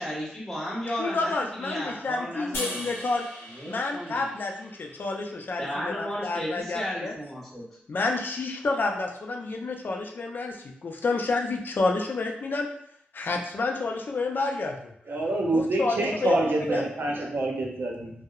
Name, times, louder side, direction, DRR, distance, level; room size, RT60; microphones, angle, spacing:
voice 1, 0.0-3.0 3.5-4.3 5.6-7.7, equal, 5° left, -7 dB, 1.3 m, -34 dB
voice 2, 0.9-3.3 3.7-7.1 7.9-12.7 13.1-14.9 15.5-16.8, left 3 dB, 60° left, 1 dB, 0.4 m, -29 dB
sound 1, 2.5-5.8, left 1 dB, 85° left, 0.8 m, -39 dB
voice 3, 15.1-18.1, right 2 dB, 65° right, 0 dB, 0.5 m, -26 dB
2.7 x 2.0 x 2.4 m, 0.70 s
cardioid pair, 50°, 4 cm